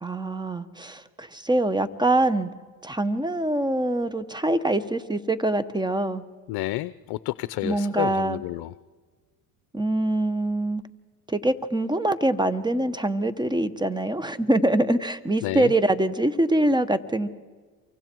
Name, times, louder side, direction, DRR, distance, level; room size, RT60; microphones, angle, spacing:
voice 1, 0.0-2.5 2.8-6.2 7.6-8.4 9.7-10.8 11.3-17.3, right 1 dB, 10° right, 14 dB, 1.3 m, -24 dB
voice 2, 6.5-8.7 15.4-15.7, left 18 dB, 60° left, 16 dB, 0.7 m, -30 dB
28.0 x 24.5 x 4.7 m, 1.5 s
supercardioid pair, 85°, 42 cm